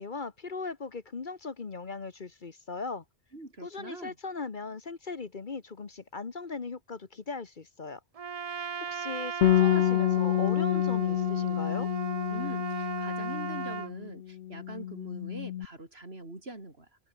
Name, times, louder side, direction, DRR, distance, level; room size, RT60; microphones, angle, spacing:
voice 1, 0.0-3.0 3.6-8.0 8.8-11.9, left 4 dB, 45° left, 1.3 m, -38 dB
voice 2, 3.3-4.2 12.3-16.9, right 2 dB, 65° right, 4.8 m, -43 dB
Trumpet, 8.2-13.9, right 7 dB, 40° right, 0.6 m, -37 dB
Bass guitar, 9.4-14.1 14.4-15.7, left 12 dB, 75° left, 0.9 m, -28 dB
omnidirectional pair, 1.1 m